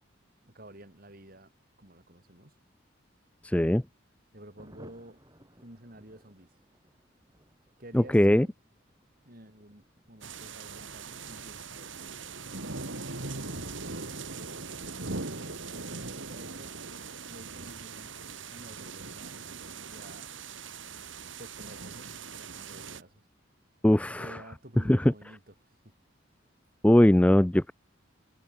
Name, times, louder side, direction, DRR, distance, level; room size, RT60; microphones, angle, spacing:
voice 1, 0.5-1.5 1.8-2.5 4.3-5.2 5.6-6.5 7.8-8.5 9.2-13.0 13.4-14.3 15.3-15.6 15.9-16.8 17.3-18.1 18.5-19.5 19.9-20.3 21.4-23.2 24.1-25.9, right 1 dB, 45° right, 4.6 m, -51 dB
voice 2, 3.4-3.8 7.9-8.5 23.8-24.4 24.9-25.1 26.8-27.7, left 1 dB, 5° left, 0.4 m, -21 dB
Thunder, 4.6-20.7 21.0-21.1 21.3-21.5 21.7-22.2, equal, 20° right, 6.8 m, -62 dB
sound 1, 10.2-23.0, right 4 dB, 70° right, 3.0 m, -40 dB
head